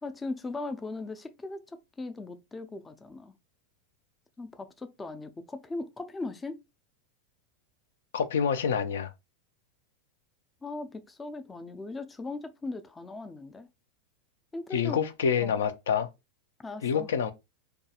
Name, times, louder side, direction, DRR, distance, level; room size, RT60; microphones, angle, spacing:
voice 1, 0.0-3.3 4.4-6.6 10.6-13.7 14.5-15.0 15.4-15.5 16.6-17.1, left 3 dB, 10° left, 0.3 m, -38 dB
voice 2, 8.1-9.1 14.7-16.1 16.8-17.3, left 7 dB, 90° left, 0.4 m, -27 dB
2.3 x 2.2 x 2.8 m
supercardioid pair, 140°, 0 cm